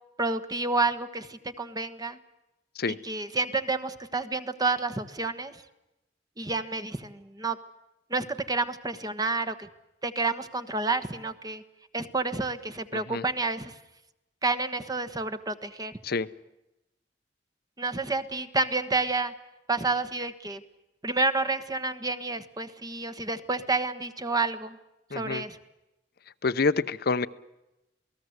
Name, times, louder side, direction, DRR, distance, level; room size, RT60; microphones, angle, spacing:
voice 1, 0.2-2.2 3.0-5.6 6.4-7.6 8.1-9.7 10.0-11.6 11.9-13.7 14.4-15.9 17.8-19.3 19.7-20.6 21.0-24.8 25.1-25.6, right 3 dB, 20° right, 1.3 m, -29 dB
voice 2, 12.9-13.2 16.0-16.3 25.1-25.4 26.4-27.3, left 4 dB, 60° left, 0.8 m, -27 dB
28.0 x 19.0 x 8.0 m
head